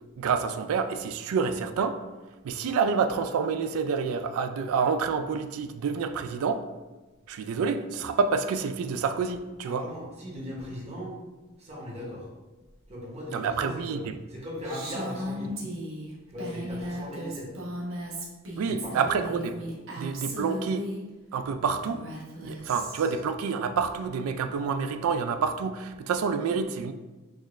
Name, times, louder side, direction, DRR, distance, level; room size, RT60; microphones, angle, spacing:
voice 1, 0.2-2.0 2.4-6.6 7.3-9.9 13.3-14.1 18.6-19.5 20.0-20.8 21.3-22.1 22.4-26.9, right 5 dB, 80° right, 10 dB, 0.3 m, -28 dB
voice 2, 9.6-11.2 11.6-12.3 12.9-14.0 14.3-15.6 16.3-17.5 18.6-19.2, equal, 30° right, -4 dB, 0.9 m, -38 dB
Female speech woman speaking, 14.6-21.0 21.8-23.2, equal, 65° right, 0.8 m, -36 dB
4.3 x 2.4 x 3.1 m, 1.2 s
head